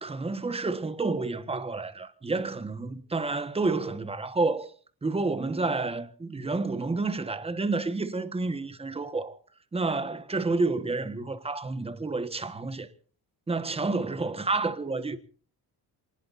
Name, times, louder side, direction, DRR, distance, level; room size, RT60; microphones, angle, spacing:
voice 1, 0.0-4.7 5.0-9.4 9.7-12.9 13.5-15.2, right 3 dB, 15° right, 1.4 m, -29 dB
27.0 x 20.0 x 2.7 m
cardioid pair, 145°, 39 cm